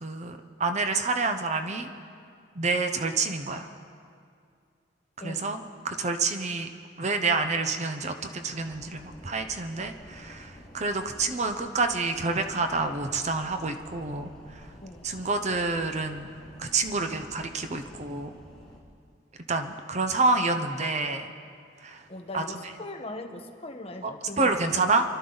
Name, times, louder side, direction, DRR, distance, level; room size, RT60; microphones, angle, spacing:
voice 1, 0.0-1.9 2.6-3.7 5.2-6.7 7.0-14.3 15.0-16.3 16.6-18.4 19.5-21.3 21.8-22.0 22.3-22.4 24.4-25.0, right 3 dB, 40° right, 6 dB, 0.8 m, -28 dB
voice 2, 5.2-5.5 14.8-15.1 22.1-24.9, left 1 dB, 35° left, 3 dB, 1.2 m, -40 dB
sound 1, 8.5-18.8, left 1 dB, 5° left, 2.0 m, -50 dB
26.5 x 12.5 x 4.0 m, 2.2 s
head